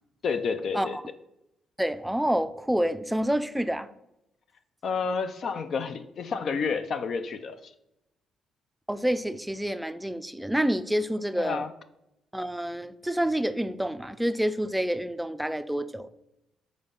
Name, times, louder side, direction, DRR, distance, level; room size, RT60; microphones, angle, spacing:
voice 1, 0.2-1.0 4.8-7.7 11.3-11.7, left 5 dB, 60° left, 10 dB, 0.5 m, -30 dB
voice 2, 1.8-3.9 8.9-11.6 12.3-16.1, equal, 5° right, 12 dB, 0.4 m, -28 dB
5.2 x 4.1 x 5.7 m, 0.86 s
cardioid pair, 90°, 0 cm